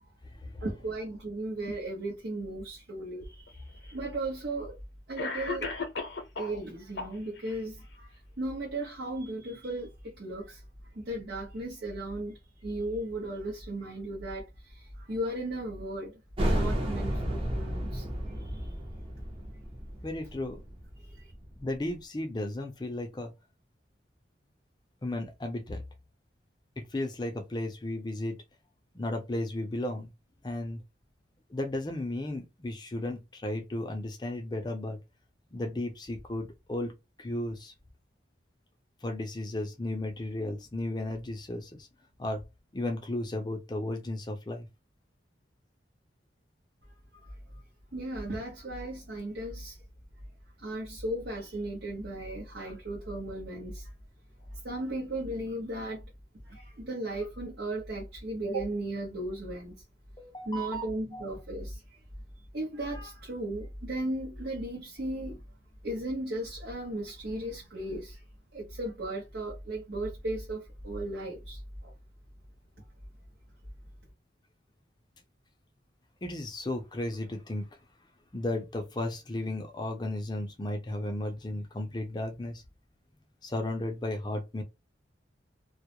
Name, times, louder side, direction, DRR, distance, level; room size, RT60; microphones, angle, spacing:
voice 1, 0.6-4.8 5.1-5.7 6.4-10.6 10.9-18.1 18.3-18.7 21.0-21.3 47.1-47.4 47.9-49.8 50.6-53.9 54.5-56.1 56.4-59.7 60.4-62.0 62.5-65.4 65.8-68.2 68.5-71.9, right 1 dB, 60° right, 0.8 m, -36 dB
Cough, 3.5-3.6 4.6-4.7 5.2-6.6 7.0-7.6, left 4 dB, 60° left, 0.7 m, -35 dB
sound 1, 16.4-21.7, equal, 30° right, 0.7 m, -32 dB
voice 2, 20.0-20.6 21.6-23.3 25.0-25.8 26.8-28.4 28.9-30.1 30.4-30.8 31.5-35.0 35.5-36.9 37.2-37.7 39.0-41.9 42.2-42.4 42.7-44.7 60.2-61.2 76.2-77.7 78.3-82.6 83.4-84.6, left 1 dB, 25° left, 0.4 m, -34 dB
2.3 x 2.0 x 2.8 m
head